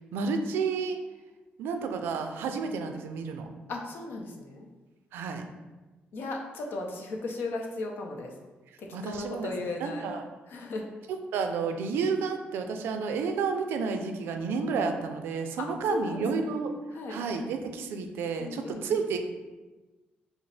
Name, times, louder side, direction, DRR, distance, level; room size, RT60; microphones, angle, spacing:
voice 1, 0.1-1.0 1.6-3.5 5.1-5.4 8.9-9.5 9.8-10.2 11.1-16.7 17.1-19.2, right 5 dB, 85° right, 6 dB, 0.4 m, -31 dB
voice 2, 3.7-4.7 6.1-8.3 8.8-10.0 10.5-10.9 15.6-16.5 16.9-17.2 18.4-19.0, left 2 dB, 70° left, 1 dB, 0.6 m, -36 dB
5.0 x 2.0 x 3.2 m, 1.2 s
cardioid pair, 85°, 4 cm